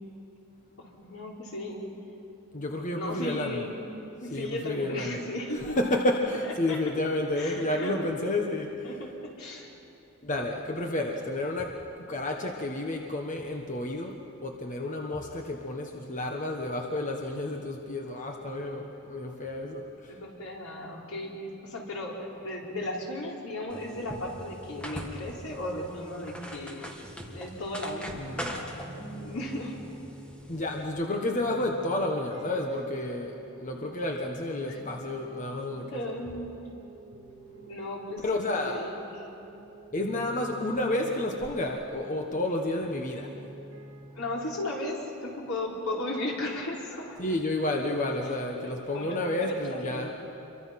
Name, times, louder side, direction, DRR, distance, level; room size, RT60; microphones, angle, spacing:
voice 1, 0.8-1.8 3.0-3.7 4.2-5.8 6.7-6.8 7.3-8.1 8.8-9.7 20.1-26.9 27.3-29.8 34.6-34.8 35.8-36.6 37.7-39.3 44.1-47.2 48.2-48.3 48.6-50.2, left 1 dB, 80° left, -3 dB, 4.3 m, -36 dB
voice 2, 2.5-3.6 4.3-5.2 5.5-8.7 10.2-11.7 12.1-14.2 14.4-19.8 28.1-28.5 30.5-36.1 38.2-38.8 39.9-43.3 47.2-50.1, left 1 dB, 35° left, 1 dB, 1.3 m, -30 dB
sound 1, 23.7-30.8, equal, 5° left, 1.8 m, -42 dB
sound 2, 27.8-44.5, right 1 dB, 60° right, 6.4 m, -48 dB
27.5 x 23.5 x 6.0 m, 2.9 s
head